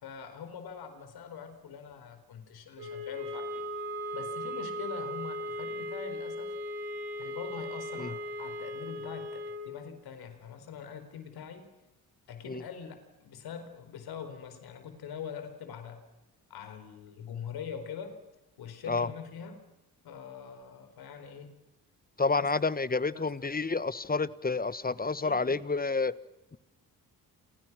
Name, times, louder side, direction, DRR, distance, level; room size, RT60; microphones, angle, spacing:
voice 1, 0.0-3.6 4.1-6.6 7.2-11.7 12.3-16.0 16.5-18.2 18.6-19.7 20.0-21.6 22.2-22.8 23.1-23.5 25.2-25.5, left 7 dB, 80° left, 8 dB, 4.6 m, -43 dB
sound 1, 2.8-9.7, equal, 90° right, 5.9 m, -37 dB
voice 2, 22.2-26.1, left 4 dB, 25° left, 17 dB, 1.2 m, -29 dB
28.5 x 28.0 x 6.2 m, 1.0 s
supercardioid pair, 60°, 37 cm